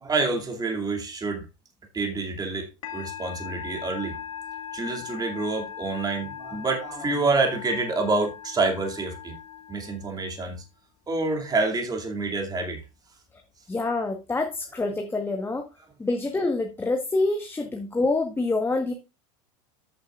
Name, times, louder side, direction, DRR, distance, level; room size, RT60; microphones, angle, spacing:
voice 1, 0.0-1.4 1.9-4.1 4.7-9.4 9.7-10.6 11.1-12.8, right 3 dB, 20° right, 2.5 m, -27 dB
Musical instrument, 2.8-10.5, left 9 dB, 85° left, 2.4 m, -39 dB
voice 2, 13.7-15.6 16.0-18.9, left 2 dB, 15° left, 1.3 m, -26 dB
14.0 x 6.8 x 2.4 m
hypercardioid pair, 90°, 18 cm